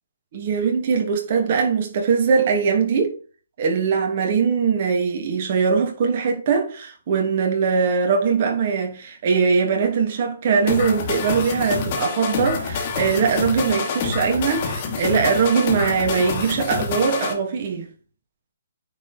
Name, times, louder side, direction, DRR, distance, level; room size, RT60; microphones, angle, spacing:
voice 1, 0.3-3.1 3.6-17.9, right 5 dB, 40° right, 2.9 m, -21 dB
sound 1, 10.7-17.3, left 5 dB, 35° left, 2.4 m, -27 dB
9.7 x 4.8 x 4.5 m
hypercardioid pair, 165°, 0 cm